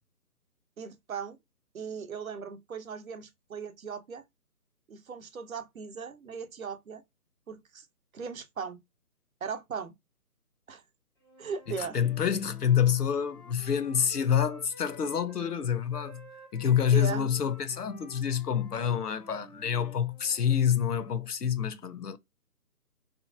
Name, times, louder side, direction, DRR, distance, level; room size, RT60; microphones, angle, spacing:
voice 1, 0.8-1.4 1.7-4.2 4.9-7.0 7.5-7.9 8.1-8.8 9.4-9.9 10.7-10.8 11.4-12.0 16.9-17.3, right 6 dB, 60° right, 0.8 m, -38 dB
Wind instrument woodwind instrument, 11.2-15.6 15.9-20.7, left 1 dB, 15° left, 0.6 m, -53 dB
voice 2, 11.7-16.3 16.5-22.2, left 8 dB, 80° left, 0.7 m, -27 dB
2.9 x 2.5 x 2.4 m
figure-of-eight pair, 150°, 46 cm